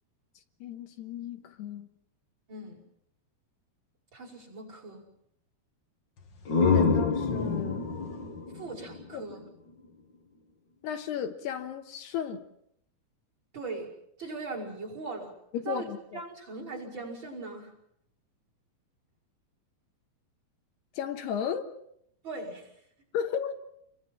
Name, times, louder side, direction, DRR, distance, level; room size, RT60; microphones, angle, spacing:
voice 1, 0.6-1.9 6.7-7.9 9.1-9.2 10.8-12.4 15.5-16.2 21.0-21.7 23.1-23.5, left 8 dB, 75° left, 5 dB, 3.3 m, -34 dB
voice 2, 2.5-2.9 4.1-5.1 8.5-9.4 13.5-13.9 14.2-15.4 15.7-15.8 16.1-17.7 22.2-22.7, right 3 dB, 25° right, 3 dB, 5.8 m, -39 dB
sound 1, 6.2-9.9, left 4 dB, 40° left, 1.7 m, -28 dB
29.0 x 23.0 x 5.9 m, 0.74 s
omnidirectional pair, 4.8 m